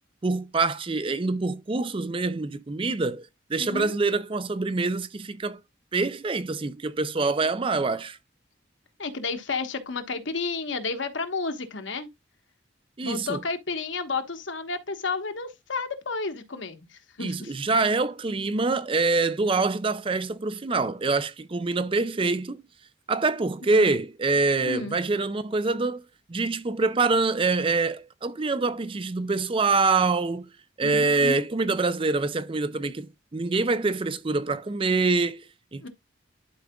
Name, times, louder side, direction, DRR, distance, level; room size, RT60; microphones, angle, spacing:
voice 1, 0.2-5.6 5.9-8.2 13.0-13.4 17.2-22.6 23.1-30.5 30.8-35.9, right 3 dB, 25° right, 0.4 m, -25 dB
voice 2, 3.6-4.0 9.0-12.1 13.0-16.9 17.2-17.5 23.7-23.9 24.7-25.0 30.8-31.4 35.8-35.9, left 4 dB, 75° left, 1.3 m, -31 dB
11.5 x 4.8 x 2.3 m
head